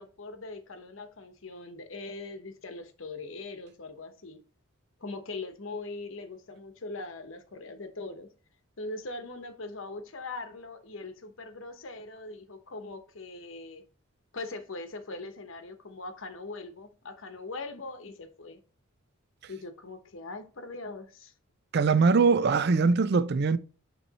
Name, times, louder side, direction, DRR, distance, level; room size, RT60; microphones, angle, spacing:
voice 1, 0.0-4.4 5.0-8.3 8.8-13.8 14.3-18.6 19.5-21.3, left 3 dB, 65° left, 1.0 m, -41 dB
voice 2, 21.7-23.6, right 4 dB, 50° right, 0.4 m, -22 dB
9.1 x 3.1 x 4.0 m
head